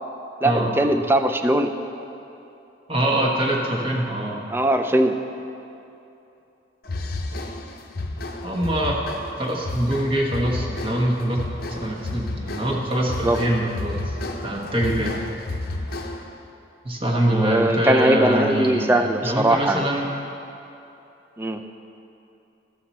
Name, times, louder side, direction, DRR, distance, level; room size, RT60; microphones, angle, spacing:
voice 1, 0.4-1.7 4.5-5.2 13.2-13.4 17.3-19.9 21.4-21.6, right 1 dB, 10° right, 7 dB, 0.4 m, -20 dB
voice 2, 2.9-4.4 8.4-9.0 9.4-11.4 11.7-14.2 14.4-15.2 16.8-20.1, right 1 dB, 30° right, -2 dB, 1.2 m, -24 dB
sound 1, 6.8-16.4, left 2 dB, 55° left, 0.7 m, -32 dB
12.5 x 7.8 x 4.2 m, 2.8 s
head